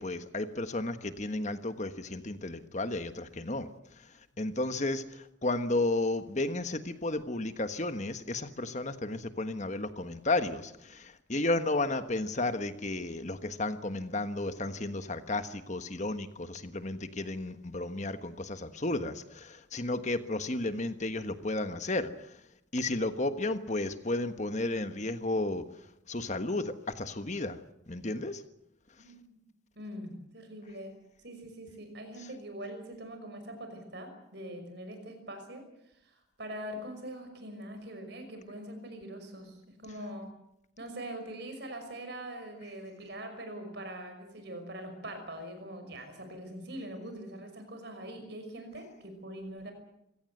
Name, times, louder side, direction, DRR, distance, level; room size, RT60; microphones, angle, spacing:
voice 1, 0.0-3.7 4.4-22.3 22.7-25.6 26.1-27.6 27.9-28.4, left 2 dB, 35° left, 10 dB, 1.4 m, -33 dB
voice 2, 29.0-29.4 29.8-30.9 31.2-35.6 36.0-40.3 40.8-49.7, right 1 dB, 55° right, 7 dB, 5.7 m, -43 dB
25.5 x 17.5 x 7.9 m, 0.82 s
head